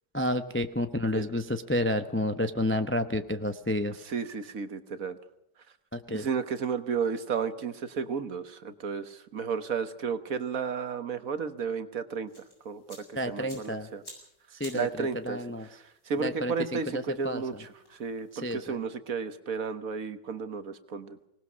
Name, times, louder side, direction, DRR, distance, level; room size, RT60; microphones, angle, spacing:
voice 1, 0.1-3.9 5.9-6.3 13.1-13.9 14.6-15.7 16.2-17.4 18.4-18.8, left 1 dB, 10° left, 8 dB, 0.5 m, -30 dB
voice 2, 4.0-5.2 6.1-12.3 12.6-14.0 14.7-21.2, right 6 dB, 55° right, 10 dB, 1.6 m, -33 dB
sound 1, 12.3-18.7, left 1 dB, 55° left, 8.3 m, -54 dB
25.0 x 19.0 x 6.3 m, 0.78 s
omnidirectional pair, 1.8 m